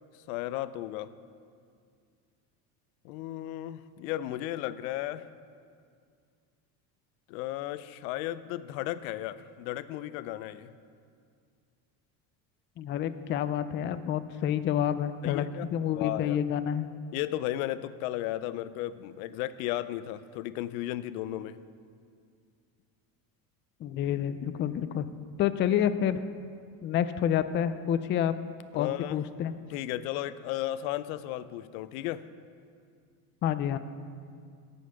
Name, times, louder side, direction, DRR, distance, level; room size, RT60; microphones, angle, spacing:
voice 1, 0.3-1.1 3.0-5.3 7.3-10.7 15.2-15.7 15.9-16.4 17.1-21.6 28.7-29.2 29.7-32.2, left 14 dB, 80° left, 15 dB, 0.5 m, -34 dB
voice 2, 12.8-16.9 23.8-25.1 25.4-26.2 26.8-28.3 28.7-29.5 33.4-33.8, left 9 dB, 30° left, 12 dB, 0.3 m, -28 dB
10.5 x 5.4 x 7.8 m, 2.2 s
supercardioid pair, 110°, 41 cm